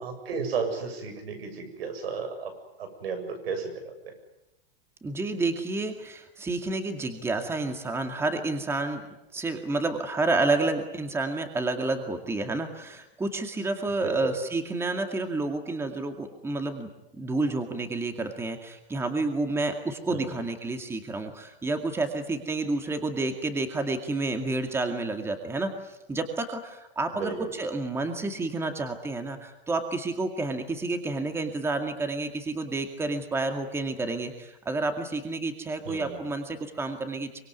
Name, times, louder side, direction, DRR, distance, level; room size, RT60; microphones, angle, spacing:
voice 1, 0.0-2.5 2.8-4.1 14.0-14.3 20.1-20.4 27.1-27.5 35.9-36.2, right 5 dB, 85° right, 7 dB, 7.4 m, -33 dB
voice 2, 5.0-9.0 9.3-37.4, right 2 dB, 10° right, 6 dB, 2.2 m, -30 dB
25.0 x 21.5 x 9.6 m, 0.90 s
supercardioid pair, 150°, 29 cm